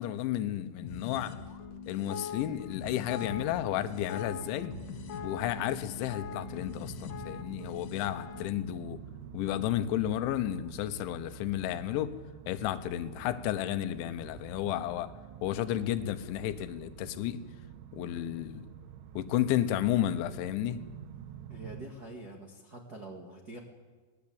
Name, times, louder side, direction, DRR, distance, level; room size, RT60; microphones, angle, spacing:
voice 1, 0.0-1.3 1.9-4.7 5.2-9.0 9.3-12.2 12.5-15.1 15.4-17.4 17.9-18.7 19.2-20.8, left 12 dB, 80° left, 11 dB, 3.3 m, -32 dB
sound 1, 0.8-8.5, left 6 dB, 60° left, 2.2 m, -42 dB
sound 2, 3.3-21.9, right 9 dB, 75° right, 3.4 m, -48 dB
voice 2, 21.5-23.6, right 2 dB, 50° right, 0 dB, 1.1 m, -45 dB
22.5 x 19.5 x 8.7 m, 1.4 s
omnidirectional pair, 5.5 m